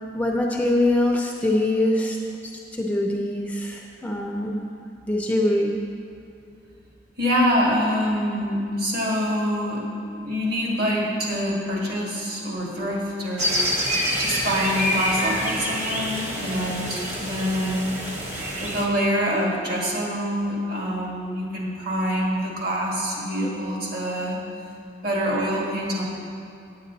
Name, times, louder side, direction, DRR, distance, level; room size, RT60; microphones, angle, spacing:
voice 1, 0.1-2.2 2.4-4.7 5.1-5.7, left 1 dB, 10° left, 0 dB, 0.5 m, -23 dB
voice 2, 7.2-9.9 10.1-13.6 14.2-17.9 18.6-24.4 25.0-26.0, equal, 55° right, -3 dB, 2.0 m, -25 dB
sound 1, 13.4-18.9, equal, 40° right, 1.3 m, -27 dB
9.0 x 8.5 x 4.0 m, 2.7 s
head